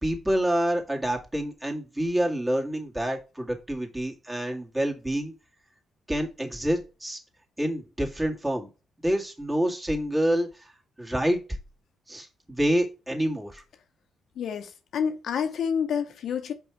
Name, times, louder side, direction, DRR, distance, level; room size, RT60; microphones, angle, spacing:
voice 1, 0.0-5.3 6.1-7.2 7.6-8.7 9.0-10.7 11.0-11.4 12.1-13.6, right 1 dB, 15° right, 2.0 m, -27 dB
voice 2, 14.4-16.5, left 7 dB, 70° left, 0.9 m, -28 dB
5.3 x 4.7 x 4.6 m
supercardioid pair, 60°, 0 cm